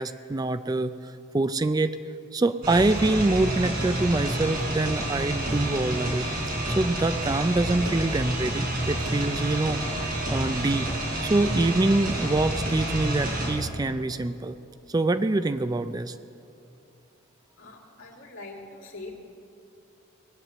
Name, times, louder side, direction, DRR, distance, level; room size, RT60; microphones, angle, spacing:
voice 1, 0.0-2.0 2.3-6.3 6.7-10.9 11.2-14.6 14.9-16.1, right 2 dB, 20° right, 11 dB, 0.4 m, -25 dB
sound 1, 2.6-13.5, right 1 dB, 45° right, 4.0 m, -29 dB
voice 2, 17.6-19.3, left 2 dB, 75° left, -2 dB, 2.6 m, -43 dB
19.5 x 9.1 x 7.6 m, 2.6 s
head